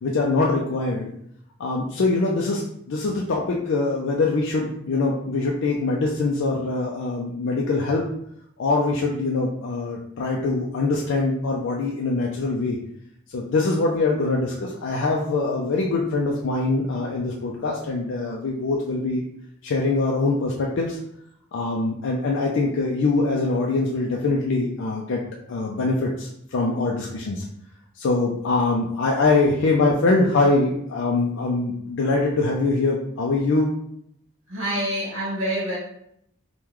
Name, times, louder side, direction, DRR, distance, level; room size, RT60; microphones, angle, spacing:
voice 1, 0.0-1.1 1.6-8.0 8.6-12.8 13.3-19.2 19.6-21.0 21.5-25.2 25.5-27.4 28.0-33.7, left 3 dB, 60° left, -2 dB, 0.4 m, -23 dB
voice 2, 34.5-35.8, equal, 65° right, -4 dB, 1.2 m, -26 dB
3.6 x 2.2 x 3.0 m, 0.74 s
head